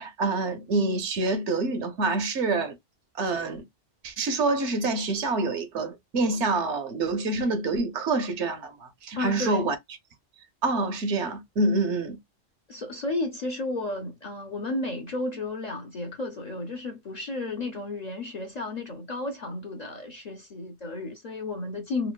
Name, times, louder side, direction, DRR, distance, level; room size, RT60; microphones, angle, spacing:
voice 1, 0.0-2.8 3.2-3.6 4.0-9.8 10.6-12.2, right 3 dB, 80° right, 1.1 m, -26 dB
voice 2, 9.2-9.7 12.7-22.1, left 2 dB, 55° left, 0.5 m, -33 dB
3.0 x 2.4 x 2.2 m
omnidirectional pair, 1.2 m